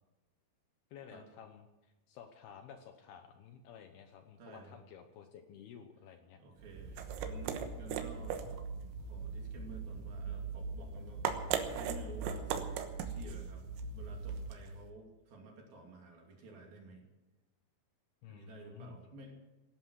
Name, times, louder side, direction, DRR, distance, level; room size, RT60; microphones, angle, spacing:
voice 1, 0.9-6.4 7.1-7.5 18.2-19.0, left 8 dB, 75° left, 7 dB, 2.6 m, -53 dB
voice 2, 4.4-4.8 6.4-8.4 9.0-13.6 13.9-17.0 18.3-19.3, right 3 dB, 55° right, 1 dB, 4.2 m, -52 dB
sound 1, 6.6-14.8, right 6 dB, 90° right, 3.5 m, -39 dB
17.5 x 11.5 x 6.3 m, 1.1 s
omnidirectional pair, 5.2 m